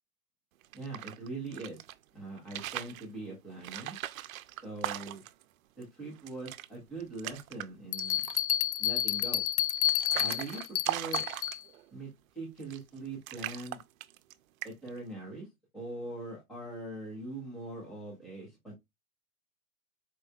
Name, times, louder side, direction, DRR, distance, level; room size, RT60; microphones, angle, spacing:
sound 1, 0.6-1.9 2.4-3.0 3.6-5.4 5.8-5.9 6.2-6.7 7.0-7.7 8.0-8.5 9.2-11.9 12.6-13.0 13.3-14.3 14.6-15.0, right 14 dB, 65° right, 0.6 m, -39 dB
voice 1, 0.7-1.8 2.1-4.0 4.6-5.2 5.8-8.2 8.8-9.4 10.2-11.3 11.9-12.1 12.4-13.8 14.6-15.5 15.7-18.7, right 2 dB, ahead, -4 dB, 0.4 m, -42 dB
Bell, 7.9-11.6, left 11 dB, 70° left, 0.5 m, -30 dB
4.4 x 3.7 x 2.3 m, 0.19 s
hypercardioid pair, 155°, 44 cm